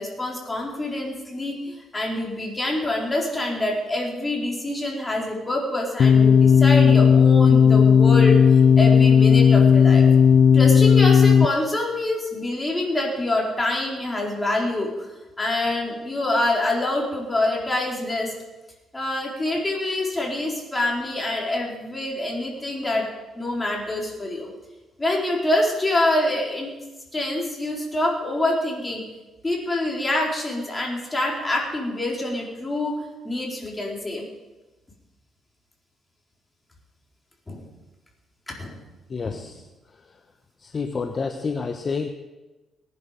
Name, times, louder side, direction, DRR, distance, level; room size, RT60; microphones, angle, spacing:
voice 1, 0.0-10.0 10.5-15.1 15.4-18.3 18.9-23.1 23.3-24.5 25.0-26.7 27.1-29.1 29.4-33.0 33.2-34.3 37.5-37.7 38.5-38.8 39.2-39.4, left 1 dB, 20° left, -2 dB, 4.3 m, -26 dB
sound 1, 6.0-11.5, left 7 dB, 60° left, 0.4 m, -14 dB
voice 2, 39.1-39.7 39.9-40.2 40.6-42.1, left 5 dB, 40° left, 6 dB, 1.0 m, -29 dB
18.5 x 11.0 x 5.2 m, 1.1 s
cardioid pair, 90°, 0 cm